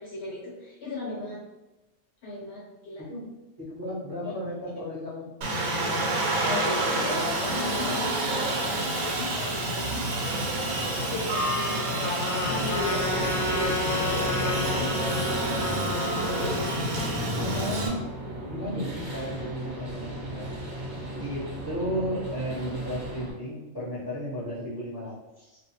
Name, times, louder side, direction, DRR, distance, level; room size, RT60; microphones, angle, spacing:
voice 1, 0.0-1.4 2.2-3.0 6.4-13.7 14.0-15.0 15.4-16.2 19.1-19.2, left 2 dB, 65° left, -5 dB, 0.7 m, -37 dB
voice 2, 3.0-3.3 3.6-5.3 17.3-18.1 18.5-20.5 21.2-25.6, equal, 20° right, -10 dB, 0.8 m, -34 dB
Aircraft, 5.4-17.9, right 1 dB, 85° right, 1.1 m, -28 dB
Trumpet, 12.0-16.7, left 2 dB, 90° left, 1.0 m, -31 dB
sound 1, 12.4-23.3, right 1 dB, 60° right, 0.9 m, -36 dB
2.4 x 2.2 x 2.7 m, 1.1 s
omnidirectional pair, 1.4 m